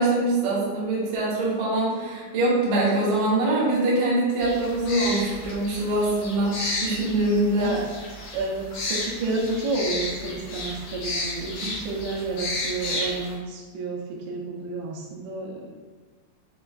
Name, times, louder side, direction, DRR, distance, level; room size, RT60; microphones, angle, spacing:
voice 1, 0.0-7.7, right 2 dB, 70° right, -7 dB, 2.0 m, -23 dB
sound 1, 4.4-13.3, left 2 dB, 75° left, 1.8 m, -33 dB
voice 2, 7.6-7.9 8.3-15.6, right 3 dB, 90° right, -3 dB, 2.9 m, -30 dB
6.6 x 2.3 x 2.4 m, 1.4 s
omnidirectional pair, 5.0 m